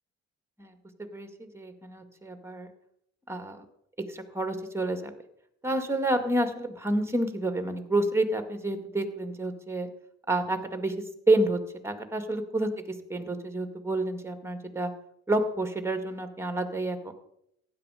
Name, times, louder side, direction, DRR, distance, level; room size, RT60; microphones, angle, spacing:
voice 1, 1.1-2.7 3.3-3.6 4.1-5.1 5.6-9.9 10.3-10.9 11.3-12.7 13.1-14.9 15.3-17.1, right 2 dB, 10° right, 7 dB, 2.1 m, -29 dB
15.5 x 10.5 x 5.1 m, 0.78 s
cardioid pair, 90°, 30 cm